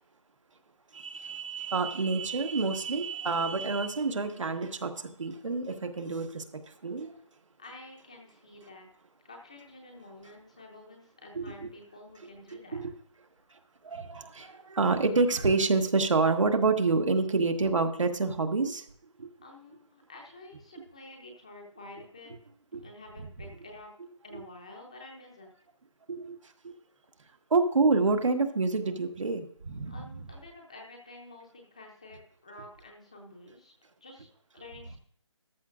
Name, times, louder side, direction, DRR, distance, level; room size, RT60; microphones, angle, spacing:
voice 1, 0.9-7.1 11.3-11.4 12.7-12.9 13.8-18.8 19.2-19.3 22.7-22.8 26.1-26.4 26.6-26.7 27.5-30.1, right 3 dB, 75° right, 5 dB, 1.6 m, -28 dB
voice 2, 7.6-8.9 9.2-12.8 19.4-22.3 22.8-23.9 24.2-25.5 29.9-33.7 34.0-34.3 34.5-35.0, left 2 dB, 10° left, 1 dB, 0.6 m, -49 dB
14.0 x 12.0 x 2.5 m, 0.62 s
hypercardioid pair, 175°, 16 cm